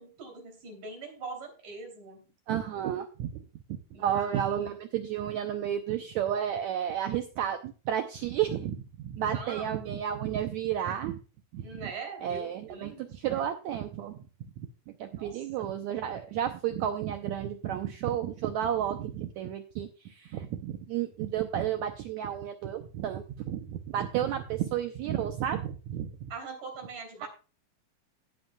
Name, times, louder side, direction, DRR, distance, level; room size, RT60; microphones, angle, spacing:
voice 1, 0.0-2.2 3.9-4.7 9.2-9.9 11.6-13.5 15.2-15.5 26.3-27.3, right 4 dB, 60° right, 3 dB, 4.5 m, -42 dB
voice 2, 2.5-3.4 4.0-11.2 11.5-11.9 12.2-14.2 14.6-14.7 15.0-26.3 27.2-27.3, right 10 dB, 90° right, 6 dB, 1.6 m, -32 dB
16.5 x 8.0 x 2.3 m, 0.35 s
omnidirectional pair, 4.1 m